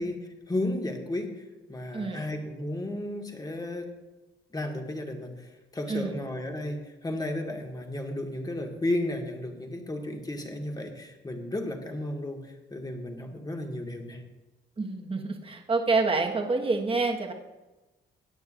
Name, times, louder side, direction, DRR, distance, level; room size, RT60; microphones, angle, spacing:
voice 1, 0.0-1.4 1.7-3.9 4.5-14.2, left 1 dB, 20° left, 2 dB, 1.9 m, -33 dB
voice 2, 1.9-2.2 5.9-6.2 14.8-17.3, right 3 dB, 30° right, 2 dB, 1.5 m, -27 dB
17.5 x 9.5 x 2.6 m, 1.1 s
cardioid pair, 90°, 20 cm